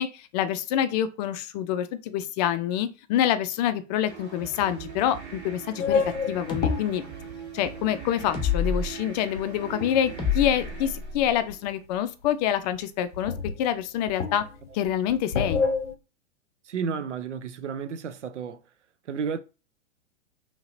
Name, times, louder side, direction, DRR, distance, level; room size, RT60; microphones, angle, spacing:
voice 1, 0.0-7.0 7.5-13.3 13.6-14.4 14.7-15.6, left 10 dB, 40° left, 0.4 m, -26 dB
sound 1, 4.0-11.8, right 6 dB, 70° right, 1.6 m, -42 dB
sound 2, 5.8-8.6 9.2-10.5 11.1-11.7 11.9-12.0 12.2-12.3 12.7-12.8 13.1-16.0, left 5 dB, 85° left, 0.6 m, -29 dB
sound 3, 6.5-6.8 8.3-8.9 10.2-11.3, left 5 dB, 15° left, 0.9 m, -27 dB
voice 2, 16.7-18.6 19.1-19.4, right 6 dB, 85° right, 0.5 m, -32 dB
2.9 x 2.9 x 2.5 m
hypercardioid pair, 105°, 35 cm